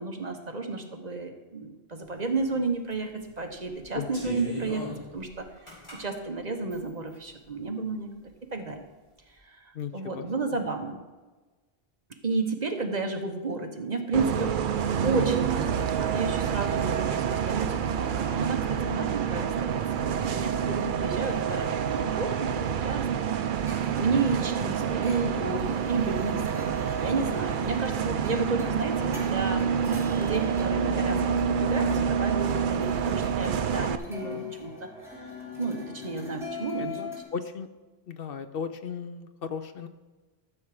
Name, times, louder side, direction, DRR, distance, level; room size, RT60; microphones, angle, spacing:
voice 1, 0.0-5.5 5.9-8.1 8.5-8.9 9.4-11.0 12.1-14.6 15.0-23.3 24.0-26.7 27.0-34.9 35.2-35.3 35.6-37.0, right 3 dB, 45° right, 4 dB, 1.1 m, -32 dB
sound 1, 2.3-2.4 2.9-3.2 3.7-6.0 6.7-7.2, equal, 30° left, 4.3 m, -37 dB
voice 2, 3.9-4.3 9.7-10.2 34.3-34.5 36.8-37.7 38.1-39.9, left 6 dB, 65° left, 10 dB, 0.8 m, -36 dB
Bus, 14.1-34.0, right 7 dB, 60° right, 0.7 m, -28 dB
sound 2, 23.5-37.2, left 5 dB, 5° right, 3.0 m, -42 dB
13.5 x 7.2 x 4.9 m, 1.3 s
omnidirectional pair, 1.1 m